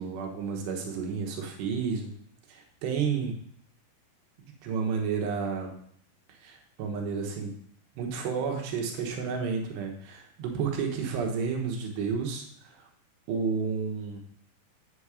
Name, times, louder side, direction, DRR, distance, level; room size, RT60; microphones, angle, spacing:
voice 1, 0.0-2.1 2.5-3.3 4.4-5.8 6.4-7.5 8.0-12.8 13.3-14.2, right 5 dB, 85° right, 2 dB, 3.4 m, -31 dB
8.1 x 7.1 x 4.9 m, 0.65 s
omnidirectional pair, 4.8 m